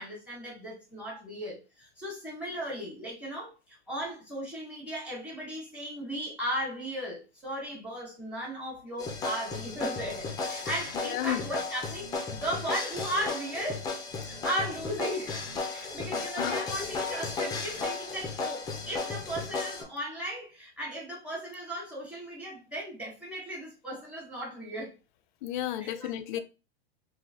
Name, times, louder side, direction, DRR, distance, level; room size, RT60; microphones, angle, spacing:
voice 1, 0.0-13.9 14.4-15.4 15.7-24.9 25.8-26.4, equal, 5° right, 1.5 m, -36 dB
sound 1, 9.0-19.8, left 4 dB, 10° left, 0.7 m, -35 dB
voice 2, 10.9-11.5 16.1-16.6 25.4-26.4, left 12 dB, 50° left, 0.5 m, -33 dB
3.7 x 2.9 x 2.9 m
supercardioid pair, 145°, 32 cm